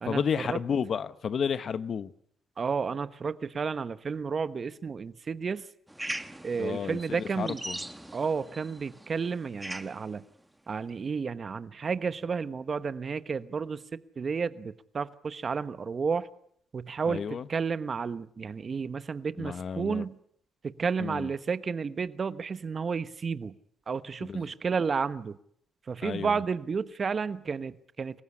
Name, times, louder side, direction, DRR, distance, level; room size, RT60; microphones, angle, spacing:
voice 1, 0.0-2.1 6.6-7.8 17.1-17.5 19.4-20.0 21.0-21.3 24.2-24.5 26.0-26.4, left 7 dB, 50° left, 1.1 m, -32 dB
voice 2, 2.6-5.7 6.4-7.6 8.1-10.2 10.7-16.3 16.7-20.2 20.6-23.6 23.9-25.4 25.9-28.2, right 5 dB, 40° right, 1.2 m, -32 dB
sound 1, 5.9-10.1, right 1 dB, 5° right, 1.5 m, -41 dB
26.0 x 15.5 x 9.9 m
cardioid pair, 90°, 0 cm